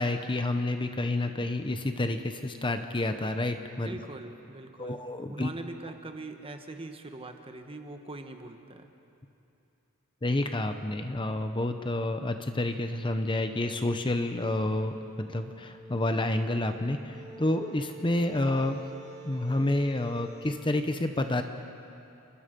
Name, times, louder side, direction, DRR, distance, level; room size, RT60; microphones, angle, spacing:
voice 1, 0.0-4.0 4.8-5.5 10.2-18.8 19.2-21.4, left 1 dB, 20° left, 7 dB, 0.8 m, -29 dB
voice 2, 3.8-5.0 5.3-8.9, right 2 dB, 25° right, 6 dB, 1.3 m, -42 dB
sound 1, 14.6-20.7, right 2 dB, 50° right, 4.1 m, -48 dB
29.0 x 20.0 x 5.3 m, 2.8 s
head